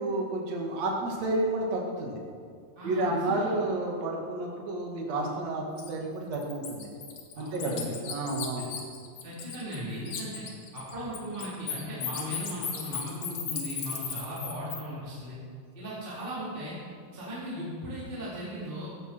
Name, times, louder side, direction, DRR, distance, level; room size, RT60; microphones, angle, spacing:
voice 1, 0.0-2.2 2.8-6.9 7.4-8.7, right 2 dB, 45° right, -1 dB, 2.8 m, -31 dB
voice 2, 2.8-3.5 7.3-8.0 8.6-8.7 9.2-10.4 10.7-15.4 15.7-16.8 17.1-18.9, equal, 15° right, -9 dB, 3.7 m, -37 dB
Bird, 5.8-5.9 6.3-9.8 10.1-14.8, left 7 dB, 60° left, 2.8 m, -36 dB
16.5 x 15.5 x 4.6 m, 2.2 s
omnidirectional pair, 4.8 m